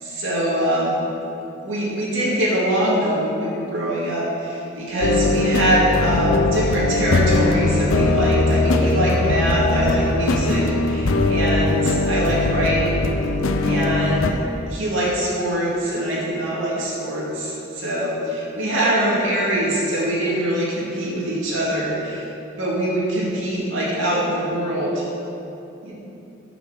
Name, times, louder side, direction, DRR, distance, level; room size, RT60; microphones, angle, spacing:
voice 1, 0.0-1.0 1.6-13.1 13.6-14.4 14.7-22.3 22.6-25.0 25.8-25.9, right 1 dB, 75° right, -6 dB, 2.2 m, -23 dB
sound 1, 5.0-14.3, left 2 dB, 85° left, 0.7 m, -20 dB
9.9 x 5.8 x 6.5 m, 2.9 s
head